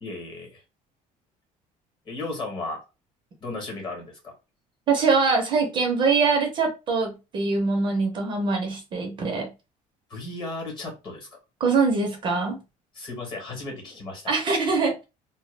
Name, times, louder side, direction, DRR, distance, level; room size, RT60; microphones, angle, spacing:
voice 1, 0.0-0.6 2.1-2.8 3.4-4.3 10.1-11.3 12.9-14.3, left 2 dB, 30° left, 1.0 m, -35 dB
voice 2, 4.9-9.5 11.6-12.6 14.3-15.0, right 4 dB, 35° right, 0.5 m, -23 dB
2.1 x 2.0 x 3.1 m
cardioid pair, 175°, 15 cm